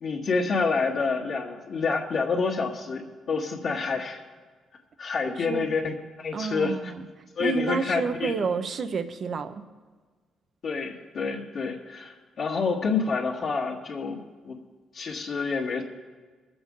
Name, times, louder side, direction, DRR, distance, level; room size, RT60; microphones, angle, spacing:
voice 1, 0.0-4.2 5.0-6.9 7.4-8.3 10.6-14.6 14.9-15.8, left 4 dB, 60° left, -5 dB, 1.7 m, -28 dB
voice 2, 6.3-7.1 7.4-9.6, right 5 dB, 50° right, 10 dB, 0.9 m, -29 dB
22.0 x 7.9 x 3.9 m, 1.4 s
cardioid pair, 90°, 0 cm